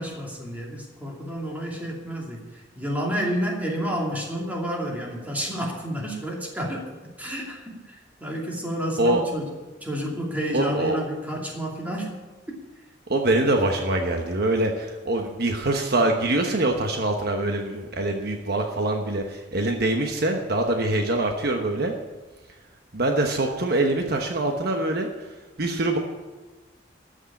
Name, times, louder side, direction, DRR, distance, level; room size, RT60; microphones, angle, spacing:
voice 1, 0.0-6.8 7.2-9.5 9.8-12.1, equal, 10° right, -2 dB, 2.6 m, -30 dB
voice 2, 10.5-11.0 13.1-21.9 22.9-25.1 25.6-26.0, right 2 dB, 55° right, 3 dB, 1.1 m, -24 dB
13.5 x 6.5 x 8.5 m, 1.3 s
head